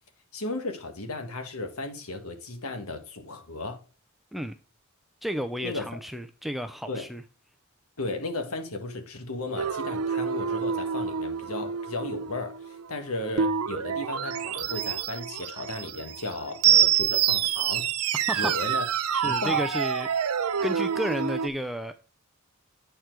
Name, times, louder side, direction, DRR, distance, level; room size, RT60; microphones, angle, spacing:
voice 1, 0.3-3.8 5.6-5.9 6.9-7.1 8.0-17.9 18.3-18.8 19.2-19.6, left 2 dB, 75° left, 1.6 m, -35 dB
voice 2, 5.2-7.2 18.3-18.8 19.1-20.1 20.6-21.9, equal, ahead, 0.4 m, -32 dB
sound 1, 9.6-21.5, right 8 dB, 85° right, 0.6 m, -27 dB
8.6 x 4.6 x 4.6 m
head